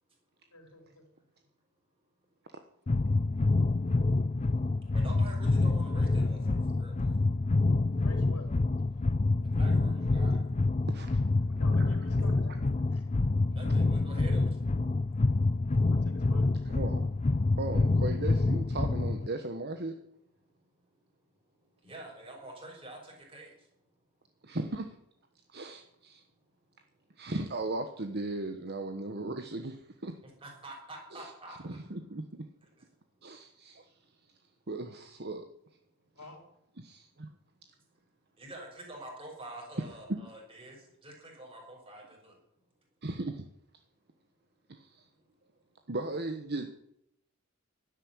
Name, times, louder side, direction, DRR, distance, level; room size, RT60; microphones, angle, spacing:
voice 1, 0.5-1.0 8.0-8.5 11.5-12.6 12.9-13.0 15.8-16.5 36.1-36.4, left 2 dB, 85° left, 4 dB, 4.9 m, -50 dB
sound 1, 2.9-19.3, left 2 dB, 30° left, 0.5 m, -27 dB
voice 2, 4.9-7.2 9.4-10.4 13.5-14.6 20.7-20.8 21.5-23.7 30.2-31.8 32.6-32.9 38.4-42.4, right 1 dB, 25° right, -1 dB, 6.5 m, -47 dB
voice 3, 10.9-11.2 16.6-17.1 17.6-20.0 24.4-25.0 25.5-26.2 27.2-30.2 31.1-31.3 31.6-32.5 33.2-33.9 34.7-35.5 36.8-37.3 40.1-40.2 43.0-43.4 44.7-45.0 45.9-46.7, right 2 dB, 45° right, 7 dB, 1.2 m, -37 dB
12.0 x 11.0 x 9.7 m, 0.79 s
head